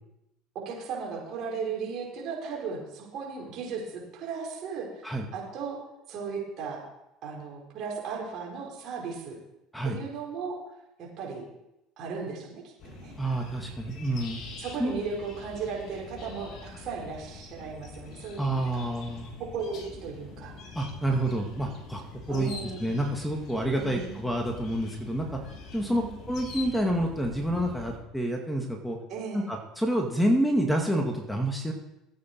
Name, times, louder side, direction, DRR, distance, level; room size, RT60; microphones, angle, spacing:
voice 1, 0.6-5.8 6.1-6.8 7.2-9.4 9.8-10.6 11.0-11.4 12.0-13.1 14.6-18.9 19.4-20.6 22.3-22.9 23.8-24.2 25.9-26.1 29.1-29.4, right 5 dB, 55° right, -2 dB, 5.0 m, -36 dB
sound 1, 12.8-28.0, left 4 dB, 50° left, 2.6 m, -44 dB
voice 2, 13.2-14.4 14.8-15.0 18.4-19.3 20.8-22.0 22.3-22.5 22.8-25.4 25.7-29.0 29.3-31.7, right 1 dB, 5° left, 2 dB, 2.2 m, -28 dB
14.5 x 8.6 x 4.7 m, 0.90 s
hypercardioid pair, 75°, 0 cm